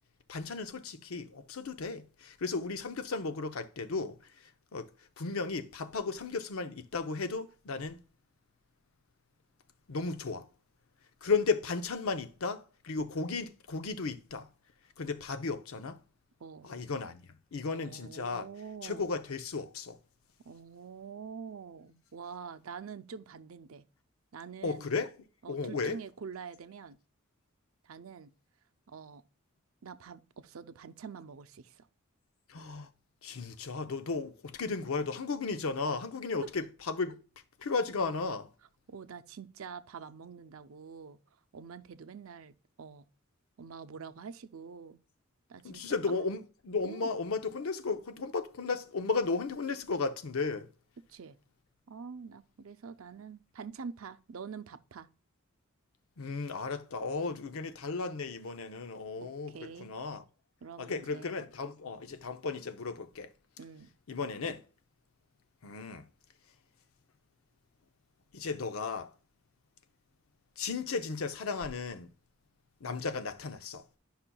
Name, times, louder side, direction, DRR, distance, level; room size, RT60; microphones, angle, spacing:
voice 1, 0.3-4.2 4.7-4.9 5.2-8.0 9.9-10.5 11.2-14.5 15.0-16.0 16.6-17.2 17.5-18.5 18.8-20.0 24.6-25.1 25.5-26.0 32.5-32.9 33.2-37.2 37.6-38.5 45.6-50.7 56.2-60.2 60.8-63.3 64.1-64.6 65.6-66.1 68.3-69.1 70.6-72.1 72.8-73.8, left 4 dB, 85° left, 0.7 m, -34 dB
voice 2, 17.7-19.1 20.4-23.8 24.3-24.9 25.4-27.0 27.8-28.3 28.9-29.2 29.8-31.9 36.4-36.5 38.9-41.2 41.5-43.1 43.6-45.0 45.5-46.3 46.8-47.1 51.1-51.4 51.9-55.1 59.2-59.9 60.6-61.3 63.6-63.9, right 6 dB, 80° right, 0.5 m, -46 dB
11.5 x 5.6 x 2.3 m
head